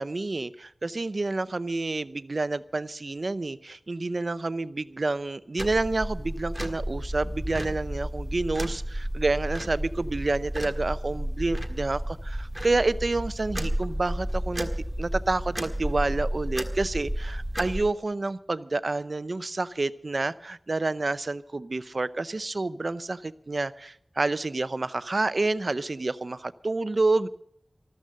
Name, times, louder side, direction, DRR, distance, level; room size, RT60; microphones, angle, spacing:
voice 1, 0.0-14.7 15.0-27.3, right 2 dB, 60° right, 15 dB, 0.6 m, -29 dB
sound 1, 5.6-17.8, equal, 10° right, 1.8 m, -32 dB
14.0 x 13.5 x 6.6 m, 0.69 s
wide cardioid pair, 65°, 0 cm